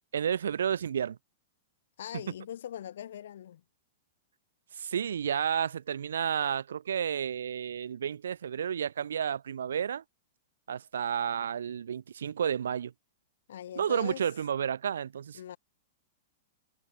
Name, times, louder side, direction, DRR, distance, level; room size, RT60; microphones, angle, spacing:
voice 1, 0.1-1.2 4.7-10.0 10.7-12.9 13.8-15.4, right 8 dB, 85° right, 0.5 m, -31 dB
voice 2, 2.0-3.6 13.5-14.2 15.3-15.6, left 10 dB, 75° left, 1.6 m, -41 dB
hypercardioid pair, 130°, 0 cm